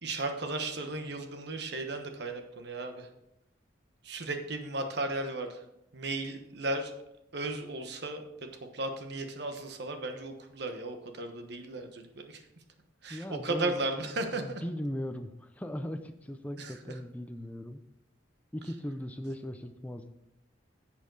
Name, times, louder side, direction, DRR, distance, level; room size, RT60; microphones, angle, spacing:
voice 1, 0.0-3.1 4.0-5.6 5.9-6.9 7.3-12.4 13.0-14.6 16.6-16.9, right 2 dB, 60° right, 6 dB, 1.2 m, -35 dB
voice 2, 13.1-13.8 14.4-17.8 18.5-20.1, equal, 10° left, 6 dB, 0.5 m, -38 dB
11.5 x 7.4 x 4.0 m, 0.82 s
head